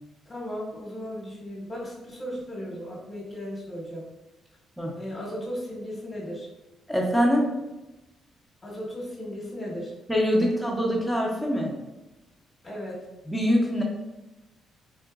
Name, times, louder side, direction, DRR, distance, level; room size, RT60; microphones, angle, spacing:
voice 1, 0.3-4.1 5.0-6.5 8.6-9.9 12.6-13.1, equal, 25° left, -5 dB, 1.1 m, -36 dB
voice 2, 6.9-7.5 10.1-11.7 13.3-13.8, equal, ahead, -2 dB, 0.8 m, -23 dB
3.8 x 2.4 x 2.3 m, 1.0 s
cardioid pair, 90°, 0 cm